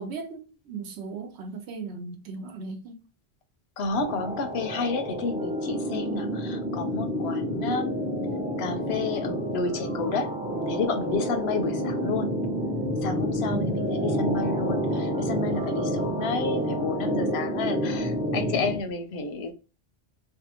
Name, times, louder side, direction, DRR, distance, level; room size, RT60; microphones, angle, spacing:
voice 1, 0.0-2.9 13.5-13.7, right 4 dB, 85° right, 0.9 m, -37 dB
voice 2, 3.8-7.9 8.6-10.3 10.7-12.3 13.0-19.5, left 4 dB, 80° left, 0.8 m, -31 dB
sound 1, 3.9-18.8, equal, 10° right, 0.4 m, -29 dB
2.6 x 2.2 x 2.8 m
omnidirectional pair, 1.1 m